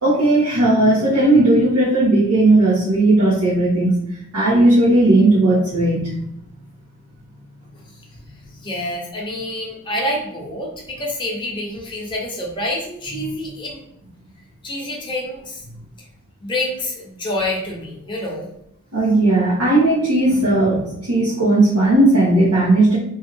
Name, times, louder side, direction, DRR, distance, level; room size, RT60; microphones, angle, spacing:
voice 1, 0.0-4.1 4.3-6.1 18.9-23.0, right 2 dB, 85° right, -8 dB, 1.0 m, -16 dB
voice 2, 8.6-13.8 14.6-15.6 16.4-18.5, left 1 dB, 20° left, -2 dB, 0.7 m, -27 dB
3.0 x 2.4 x 3.3 m, 0.75 s
head